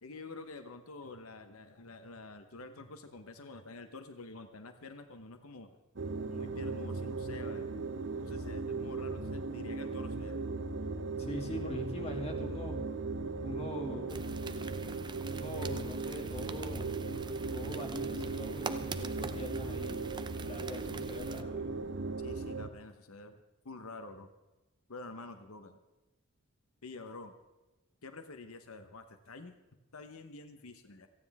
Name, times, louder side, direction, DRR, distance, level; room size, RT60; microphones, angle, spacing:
voice 1, 0.0-5.8 6.2-7.9 8.2-10.4 22.2-23.4 23.6-24.3 24.9-25.8 26.8-27.3 28.0-29.5 29.9-31.1, left 3 dB, 85° left, 8 dB, 1.1 m, -48 dB
sound 1, 6.0-22.7, right 3 dB, 60° right, 0.8 m, -37 dB
voice 2, 11.2-12.8 13.4-14.3 15.3-17.1 17.5-20.0 20.5-21.9, equal, 30° left, 1 dB, 2.3 m, -42 dB
sound 2, 14.1-21.4, right 4 dB, 20° right, 0.6 m, -45 dB
28.5 x 9.7 x 3.6 m, 1.1 s
head